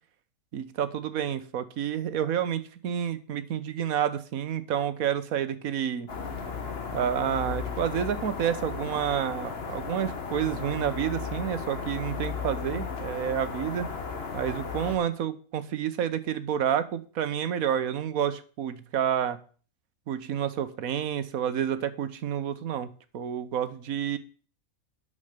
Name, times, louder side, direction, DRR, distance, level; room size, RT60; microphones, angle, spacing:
voice 1, 0.5-6.1 6.9-13.9 14.3-19.4 20.1-22.9 23.1-24.2, right 9 dB, 75° right, 13 dB, 1.3 m, -29 dB
sound 1, 6.1-15.0, left 5 dB, 45° left, 1.6 m, -35 dB
8.8 x 6.7 x 6.7 m, 0.41 s
omnidirectional pair, 1.5 m